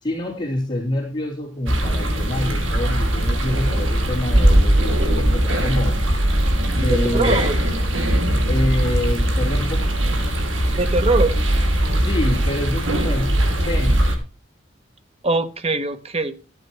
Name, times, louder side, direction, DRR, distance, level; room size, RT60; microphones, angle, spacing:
voice 1, 0.0-6.0 6.7-7.4 8.5-9.9 11.9-14.1, left 1 dB, 25° left, -1 dB, 3.1 m, -26 dB
sound 1, 1.7-14.2, right 1 dB, 85° right, 2.8 m, -20 dB
voice 2, 6.9-7.5 10.8-11.3 15.2-16.4, right 2 dB, 35° right, 10 dB, 1.2 m, -22 dB
12.5 x 8.2 x 4.7 m, 0.34 s
head